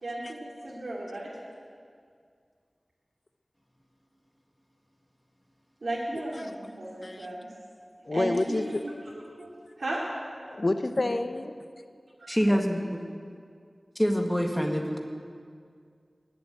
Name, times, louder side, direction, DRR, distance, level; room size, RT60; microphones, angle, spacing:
voice 1, 0.0-1.3 5.8-7.5 8.1-8.9 9.4-10.0 12.2-12.4, right 1 dB, 85° right, -6 dB, 2.6 m, -35 dB
voice 2, 8.1-8.8 10.5-11.5, left 2 dB, 55° left, 8 dB, 0.9 m, -28 dB
voice 3, 12.3-13.1 14.0-15.0, equal, 5° left, 2 dB, 1.9 m, -25 dB
20.0 x 7.7 x 9.0 m, 2.2 s
wide cardioid pair, 60°, 0 cm